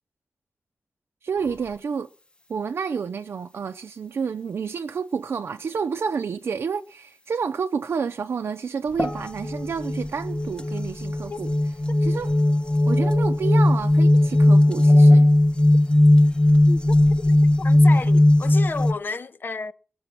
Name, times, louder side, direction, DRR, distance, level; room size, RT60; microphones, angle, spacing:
voice 1, 1.2-2.1 2.5-11.5 12.0-12.3 12.9-15.3, right 6 dB, 90° right, 0.6 m, -29 dB
sound 1, 9.0-18.9, left 1 dB, 25° left, 0.9 m, -18 dB
voice 2, 16.7-19.7, left 4 dB, 55° left, 0.7 m, -33 dB
21.0 x 7.1 x 5.9 m
wide cardioid pair, 80°, 4 cm